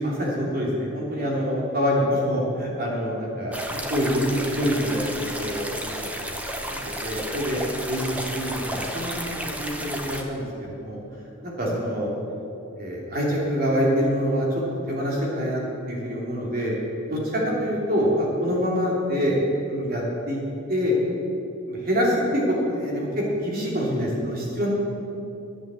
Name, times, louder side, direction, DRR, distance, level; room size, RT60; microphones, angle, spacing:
voice 1, 0.0-3.5 3.9-5.1 5.4-6.2 6.7-7.6 7.9-11.0 11.4-12.1 12.8-14.6 14.9-15.6 15.9-16.7 17.1-19.4 19.7-20.4 20.7-21.0 21.7-24.7, equal, 45° right, -3 dB, 3.1 m, -25 dB
sound 1, 3.5-10.2, equal, 5° right, 0.9 m, -32 dB
11.0 x 8.5 x 7.7 m, 2.9 s
head